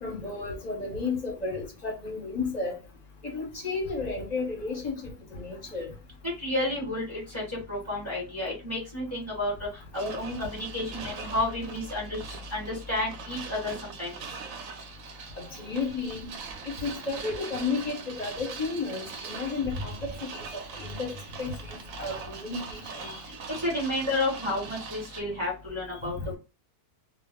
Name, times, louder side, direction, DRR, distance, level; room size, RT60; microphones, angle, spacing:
voice 1, 0.0-2.8 3.2-5.9 15.4-16.3 16.8-20.4 20.8-21.1 21.4-23.2 26.0-26.4, left 4 dB, 40° left, 0.6 m, -33 dB
voice 2, 6.2-9.7 9.9-14.2 23.6-26.4, left 1 dB, 20° right, 1.1 m, -31 dB
sound 1, 9.9-25.2, right 5 dB, 70° right, 0.9 m, -42 dB
2.5 x 2.1 x 3.5 m
omnidirectional pair, 1.6 m